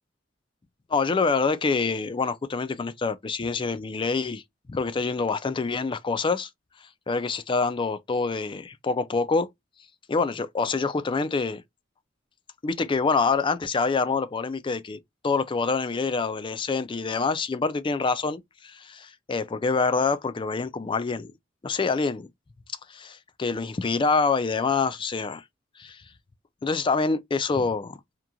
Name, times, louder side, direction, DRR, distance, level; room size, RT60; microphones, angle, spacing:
voice 1, 0.9-4.4 4.7-6.5 7.1-9.5 10.1-11.6 12.6-15.0 15.2-21.3 21.6-22.3 22.9-25.4 25.8-26.0 26.6-28.0, left 4 dB, 25° left, 0.4 m, -26 dB
2.9 x 2.4 x 2.2 m
head